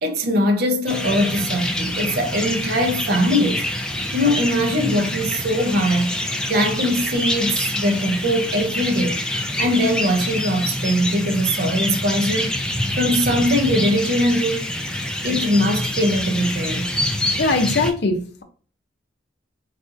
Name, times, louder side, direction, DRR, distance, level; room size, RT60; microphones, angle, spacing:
voice 1, 0.0-3.7 4.1-6.1 6.5-9.2 9.6-12.5 12.9-14.6 15.2-16.9, equal, 55° right, 0.5 m, -21 dB
sound 1, 0.9-17.9, left 1 dB, 5° left, 0.3 m, -26 dB
voice 2, 17.4-18.4, left 3 dB, 60° left, 0.6 m, -21 dB
4.1 x 2.5 x 2.5 m
head